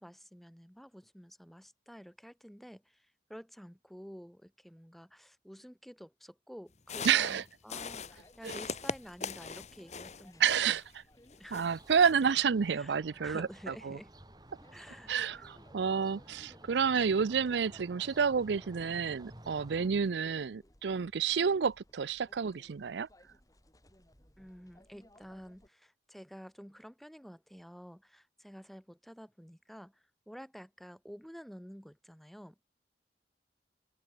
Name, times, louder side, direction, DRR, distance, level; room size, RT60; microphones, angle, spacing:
voice 1, 0.0-10.4 11.4-11.7 12.7-14.1 14.7-15.1 24.4-32.5, equal, ahead, 1.6 m, -50 dB
sound 1, 6.8-10.9 11.3-12.3, left 4 dB, 40° left, 1.5 m, -42 dB
voice 2, 7.0-7.4 8.4-8.6 10.4-11.0 11.5-14.0 15.1-23.1, right 6 dB, 80° right, 0.5 m, -30 dB
sound 2, 7.7-25.7, left 1 dB, 20° left, 5.3 m, -62 dB
Berlin window atmo, 11.6-19.9, right 1 dB, 25° right, 3.8 m, -54 dB
open air
head